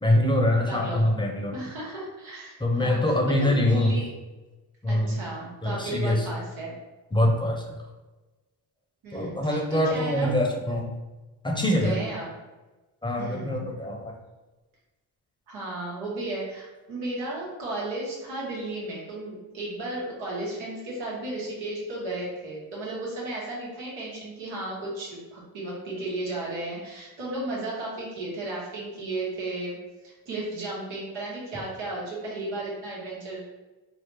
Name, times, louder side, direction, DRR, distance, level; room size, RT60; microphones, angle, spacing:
voice 1, 0.0-1.6 2.6-4.0 4.8-5.2 5.6-6.3 7.1-7.8 9.1-10.9 11.4-12.0 13.0-14.1, left 1 dB, 10° left, 1 dB, 0.7 m, -24 dB
voice 2, 0.6-1.0 1.5-4.1 4.9-6.7 9.0-10.4 11.7-12.3 13.2-13.7 15.5-29.8 30.0-33.4, right 2 dB, 90° right, -5 dB, 1.2 m, -34 dB
3.8 x 2.0 x 3.3 m, 1.1 s
supercardioid pair, 55°, 46 cm